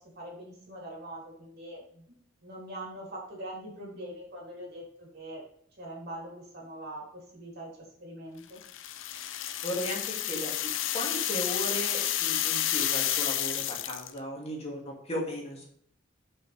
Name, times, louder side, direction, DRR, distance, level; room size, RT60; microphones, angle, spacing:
voice 1, 0.2-2.0 2.4-5.4 5.8-7.7 8.0-8.6, right 1 dB, 50° right, -3 dB, 3.4 m, -42 dB
sound 1, 8.6-14.2, left 12 dB, 70° left, 0.7 m, -30 dB
voice 2, 9.6-15.7, equal, 30° left, -2 dB, 2.6 m, -36 dB
8.9 x 6.0 x 3.4 m, 0.64 s
head